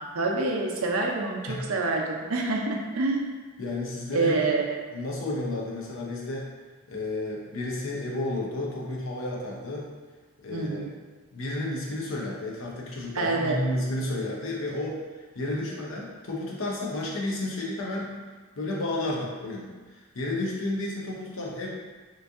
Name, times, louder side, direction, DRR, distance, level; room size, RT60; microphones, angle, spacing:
voice 1, 0.1-3.3 4.1-4.7 10.5-10.9 13.1-13.6, right 3 dB, 85° right, 0 dB, 0.5 m, -27 dB
voice 2, 3.6-4.6 4.9-6.5 6.9-9.9 10.4-10.9 11.3-15.0 15.3-18.1 18.6-21.7, left 2 dB, 70° left, -3 dB, 0.7 m, -32 dB
3.1 x 2.6 x 3.5 m, 1.4 s
head